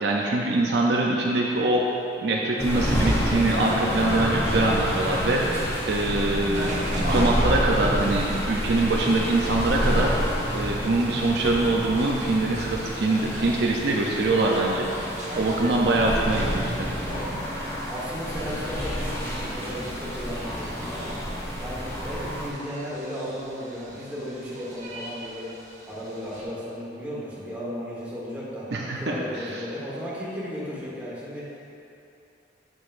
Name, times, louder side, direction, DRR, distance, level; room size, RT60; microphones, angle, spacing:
voice 1, 0.0-1.8 2.2-5.4 5.9-6.7 7.0-10.2 10.5-15.1 15.4-16.7 28.7-29.2, right 2 dB, 60° right, -2 dB, 0.5 m, -23 dB
sound 1, 2.6-22.5, equal, 15° left, 0.8 m, -29 dB
sound 2, 6.5-26.4, right 1 dB, 40° right, 0.9 m, -41 dB
voice 2, 15.9-16.5 17.0-17.3 17.9-21.2 21.6-25.5 25.9-28.7 29.0-31.7, equal, 10° right, -8 dB, 1.3 m, -35 dB
7.8 x 6.2 x 2.5 m, 2.8 s
head